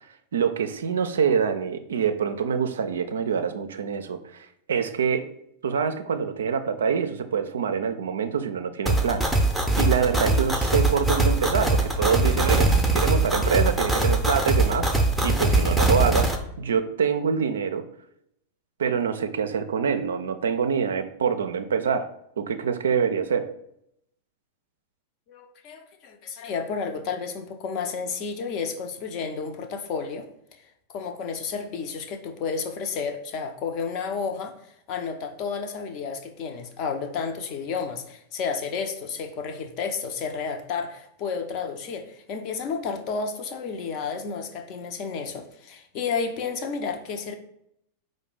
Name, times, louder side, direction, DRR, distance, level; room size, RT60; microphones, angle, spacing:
voice 1, 0.3-5.3 5.6-9.3 9.8-14.9 15.2-16.3 16.6-17.8 18.8-22.1 22.4-23.5, right 6 dB, 65° right, 0.4 m, -25 dB
sound 1, 8.9-16.4, right 2 dB, ahead, 0.6 m, -22 dB
voice 2, 25.3-30.3 30.9-34.6 34.9-47.4, left 5 dB, 40° left, 0.6 m, -31 dB
5.0 x 2.1 x 4.8 m
figure-of-eight pair, 90°, 0 cm